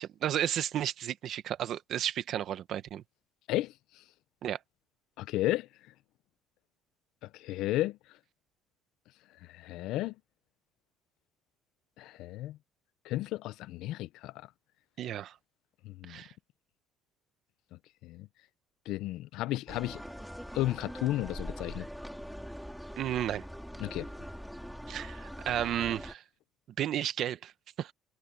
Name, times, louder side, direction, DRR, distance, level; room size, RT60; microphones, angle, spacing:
voice 1, 0.0-3.0 4.4-4.6 15.0-15.3 16.1-16.3 23.0-23.4 24.9-26.2 26.8-27.5 27.8-27.9, right 11 dB, 45° right, 1.2 m, -33 dB
voice 2, 3.5-4.0 5.2-5.7 7.2-8.0 9.4-10.1 12.0-12.6 13.0-14.5 15.8-16.2 18.0-18.3 18.9-20.0 20.5-21.9 23.8-24.1, left 16 dB, 65° left, 0.5 m, -33 dB
sound 1, 19.7-26.1, equal, ahead, 3.4 m, -43 dB
cardioid pair, 165°, 0 cm